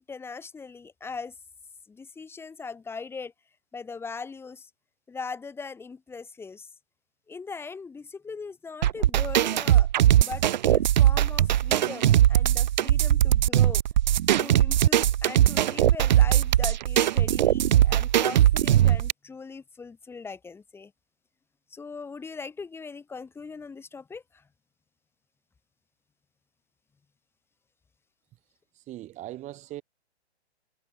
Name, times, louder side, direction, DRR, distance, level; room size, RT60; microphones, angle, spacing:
voice 1, 0.0-1.4 1.9-3.3 3.7-4.7 5.1-6.7 7.3-9.9 10.2-13.8 14.3-20.9 21.7-24.4, left 5 dB, 5° left, 2.1 m, -40 dB
sound 1, 8.8-19.1, right 12 dB, 45° right, 0.6 m, -20 dB
voice 2, 28.7-29.8, right 15 dB, 20° right, 3.4 m, -39 dB
figure-of-eight pair, 130°, 34 cm